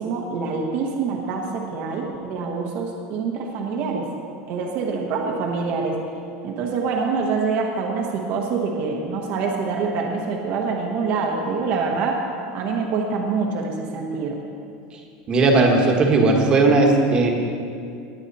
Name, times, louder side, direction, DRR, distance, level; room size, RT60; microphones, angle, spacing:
voice 1, 0.0-4.1 4.5-6.0 6.4-12.2 12.5-14.4, right 4 dB, 40° right, 0 dB, 1.2 m, -25 dB
voice 2, 15.3-17.4, right 3 dB, 25° right, 1 dB, 1.5 m, -17 dB
19.5 x 8.2 x 4.2 m, 2.4 s
supercardioid pair, 170°, 4 cm